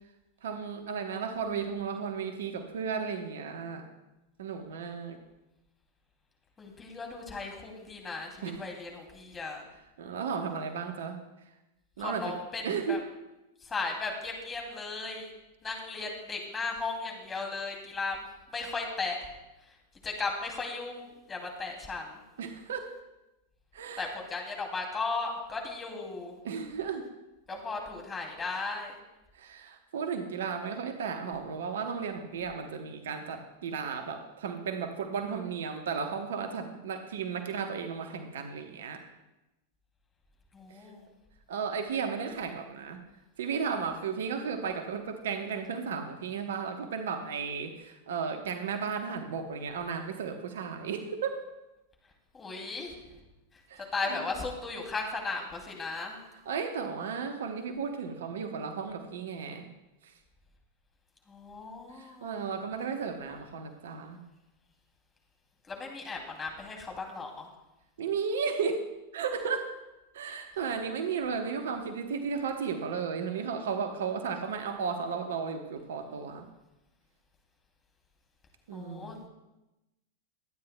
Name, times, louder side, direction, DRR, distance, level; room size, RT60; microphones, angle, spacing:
voice 1, 0.4-3.9 4.4-5.2 8.4-8.6 10.0-11.2 12.0-12.3 12.6-13.0 22.4-22.9 23.7-24.1 26.4-27.0 29.3-39.0 40.7-40.8 41.5-43.0 43.4-51.4 53.7-54.2 56.4-59.7 60.0-60.1 61.9-64.2 68.0-68.9 69.1-69.8 70.1-76.5 78.7-79.2, right 6 dB, 60° right, 7 dB, 1.1 m, -34 dB
voice 2, 6.6-9.6 12.0-13.0 13.6-15.3 15.6-19.3 20.0-22.2 24.0-26.3 27.5-28.9 40.5-41.0 52.3-52.9 53.9-56.2 61.3-62.4 65.7-67.5 70.6-70.7 78.7-79.2, left 3 dB, 15° left, 1 dB, 2.6 m, -36 dB
23.0 x 9.5 x 2.3 m, 0.98 s
figure-of-eight pair, 90°, 0 cm